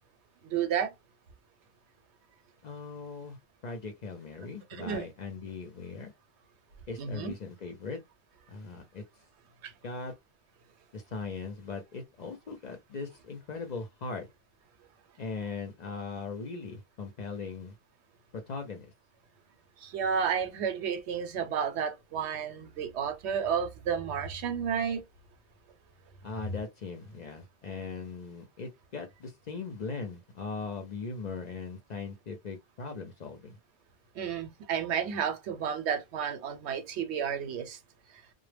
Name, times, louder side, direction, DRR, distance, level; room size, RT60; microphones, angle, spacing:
voice 1, 0.5-0.9 4.7-5.0 7.0-7.3 9.6-9.7 19.8-25.0 34.1-37.8, right 7 dB, 90° right, 0.9 m, -31 dB
voice 2, 2.6-6.1 6.9-8.0 8.5-9.0 9.8-10.1 10.9-14.3 15.2-17.8 18.3-18.9 26.2-33.6, left 4 dB, 50° left, 0.5 m, -39 dB
2.1 x 2.0 x 3.2 m
omnidirectional pair, 1.1 m